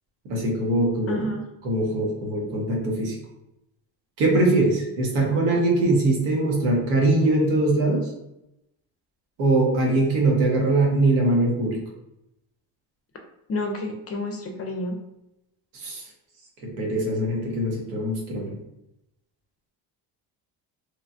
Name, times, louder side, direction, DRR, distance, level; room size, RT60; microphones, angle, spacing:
voice 1, 0.3-1.3 1.6-3.2 4.2-8.1 9.4-11.8 15.7-16.0 16.6-18.5, right 2 dB, 85° right, -1 dB, 1.0 m, -22 dB
voice 2, 1.1-1.5 13.5-15.0, left 1 dB, 30° left, 3 dB, 0.4 m, -29 dB
3.1 x 2.2 x 2.5 m, 0.86 s
cardioid pair, 90°, 48 cm